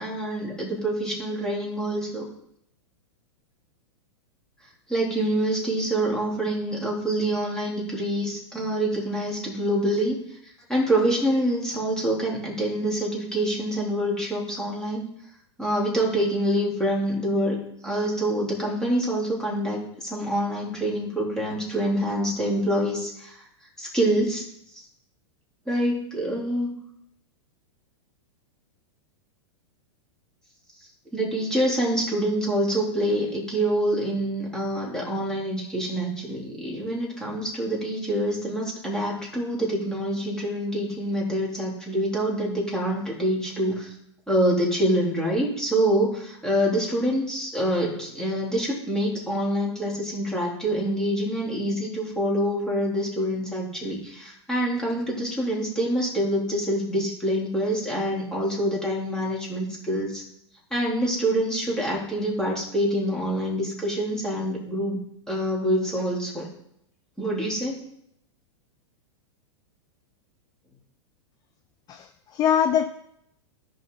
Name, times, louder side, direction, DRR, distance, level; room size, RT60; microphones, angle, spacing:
voice 1, 0.0-2.2 4.9-10.2 10.7-15.0 15.6-17.6 17.8-23.4 23.8-24.4 24.7-24.8 25.7-26.7 31.1-43.9 44.3-60.2 60.7-65.0 65.3-66.5 67.2-67.8, right 1 dB, 5° left, -4 dB, 3.3 m, -26 dB
voice 2, 71.9-72.9, left 8 dB, 25° left, 8 dB, 0.5 m, -23 dB
14.0 x 5.4 x 3.9 m, 0.74 s
hypercardioid pair, 125°, 16 cm